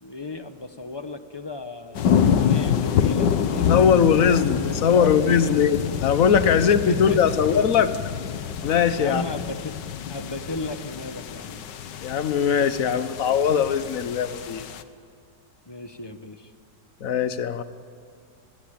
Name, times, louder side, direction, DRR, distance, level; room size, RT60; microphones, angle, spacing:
voice 1, 0.0-4.1 4.4-5.1 5.4-5.5 6.5-7.4 9.0-9.7 10.1-11.7 15.7-16.5, left 3 dB, 15° left, 9 dB, 0.9 m, -34 dB
sound 1, 1.9-14.8, left 8 dB, 75° left, 1.7 m, -27 dB
voice 2, 3.7-7.9 8.6-9.2 12.0-14.6 17.0-17.6, left 7 dB, 55° left, 12 dB, 1.4 m, -20 dB
29.5 x 21.0 x 8.7 m, 2.3 s
omnidirectional pair, 1.9 m